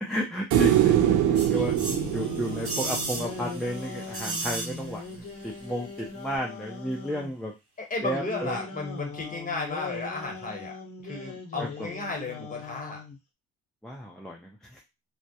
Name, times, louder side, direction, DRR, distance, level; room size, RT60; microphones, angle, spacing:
voice 1, 0.0-1.7 2.1-7.5 8.0-8.6 11.6-11.9 13.8-14.8, equal, ahead, -2 dB, 0.4 m, -33 dB
sound 1, 0.5-3.8 6.4-6.5, right 11 dB, 75° right, 0.5 m, -24 dB
sound 2, 1.3-5.1 5.4-5.5, right 2 dB, 45° right, 0.9 m, -35 dB
sound 3, 1.5-7.3 8.1-13.2, left 4 dB, 50° left, 0.8 m, -40 dB
voice 2, 7.8-10.7 11.0-13.0, left 3 dB, 25° left, 1 dB, 1.0 m, -34 dB
2.2 x 2.1 x 2.7 m, 0.24 s
cardioid pair, 90°, 30 cm